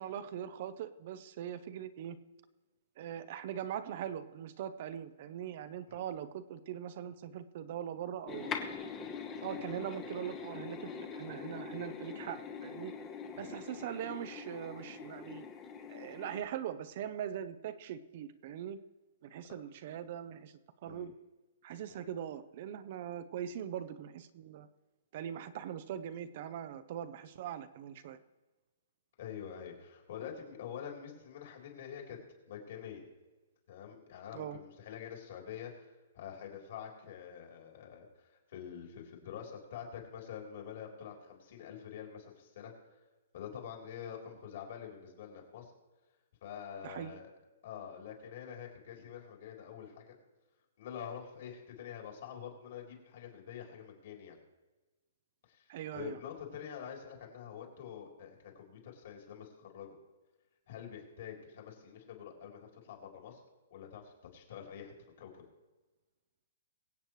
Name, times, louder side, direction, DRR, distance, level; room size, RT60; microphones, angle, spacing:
voice 1, 0.0-2.2 3.0-8.8 9.4-12.9 13.4-15.4 15.9-18.8 19.2-21.1 21.6-24.7 25.1-28.2 34.3-34.6 46.8-47.1 55.7-56.2, right 10 dB, 40° right, 12 dB, 0.6 m, -41 dB
sound 1, 8.3-16.4, left 6 dB, 15° left, 1.0 m, -43 dB
voice 2, 29.2-32.2 32.5-33.1 33.7-35.9 36.1-43.0 43.3-45.7 46.4-47.3 47.6-50.1 50.8-54.4 55.5-60.0 60.7-63.4 63.7-65.5, left 8 dB, 50° left, 1 dB, 3.4 m, -46 dB
23.5 x 8.2 x 3.1 m, 1.2 s
hypercardioid pair, 170°, 0 cm